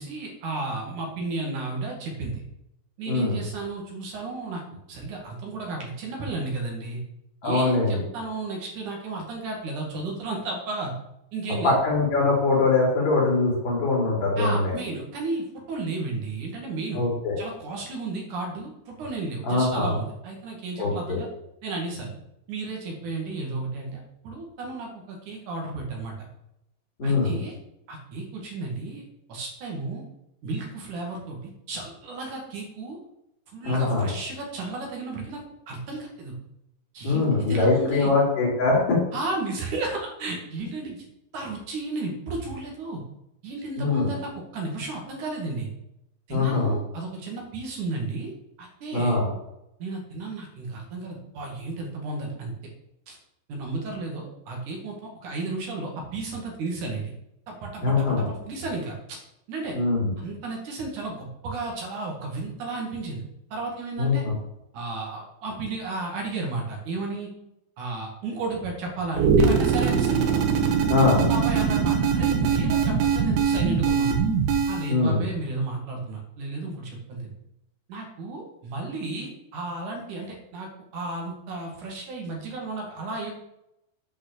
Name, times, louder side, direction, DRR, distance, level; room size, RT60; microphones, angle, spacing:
voice 1, 0.0-2.4 3.0-7.0 7.4-10.9 11.3-11.8 14.4-17.0 17.4-21.3 21.6-22.1 22.5-26.1 27.0-27.5 27.9-29.0 29.3-30.1 30.4-33.0 33.5-35.4 35.7-36.3 36.9-38.1 39.1-41.0 41.3-43.0 43.4-45.7 46.3-48.3 48.6-49.2 49.8-52.5 53.1-53.2 53.5-57.1 57.5-59.2 59.5-59.8 60.2-63.2 63.5-64.2 64.7-67.3 67.8-70.2 71.0-74.2 74.7-77.3 77.9-83.3, right 3 dB, 55° right, 0 dB, 2.8 m, -33 dB
voice 2, 3.1-3.4 7.4-8.0 11.6-14.7 16.9-17.3 19.4-19.9 20.8-21.2 27.0-27.4 33.6-34.1 37.0-39.0 43.8-44.1 46.3-46.7 48.9-49.3 57.8-58.2 59.7-60.1 64.0-64.3 70.9-71.2 74.9-75.3, left 3 dB, 35° left, -4 dB, 4.0 m, -22 dB
sound 1, 69.1-74.9, right 6 dB, 80° right, 3.7 m, -22 dB
8.8 x 5.5 x 6.6 m, 0.85 s
omnidirectional pair, 5.4 m